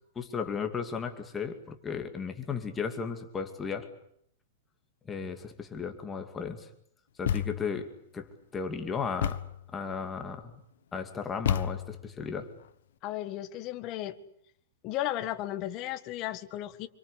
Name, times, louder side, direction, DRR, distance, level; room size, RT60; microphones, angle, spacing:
voice 1, 0.2-3.9 5.1-6.7 7.2-7.9 8.1-9.4 9.7-10.5 10.9-12.5, left 6 dB, 10° left, 5 dB, 2.4 m, -35 dB
Thump thud, 7.3-7.8 9.2-9.7 11.5-12.1, left 9 dB, 75° left, 1.2 m, -30 dB
voice 2, 13.0-14.2 14.8-16.9, left 13 dB, 30° left, 9 dB, 1.8 m, -34 dB
27.0 x 25.0 x 8.3 m, 0.69 s
supercardioid pair, 170°, 0 cm